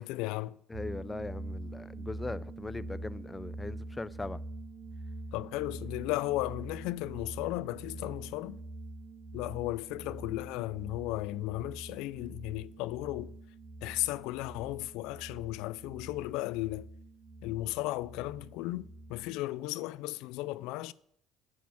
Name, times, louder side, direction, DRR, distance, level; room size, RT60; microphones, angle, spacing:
voice 1, 0.0-0.6 5.3-8.6 9.3-13.4 13.8-16.9 17.4-20.9, left 18 dB, 80° left, 0.4 m, -35 dB
voice 2, 0.7-4.4, left 2 dB, 15° left, 0.4 m, -40 dB
sound 1, 0.7-19.4, right 2 dB, 50° right, 4.2 m, -45 dB
8.5 x 6.4 x 7.1 m
supercardioid pair, 95°, 0 cm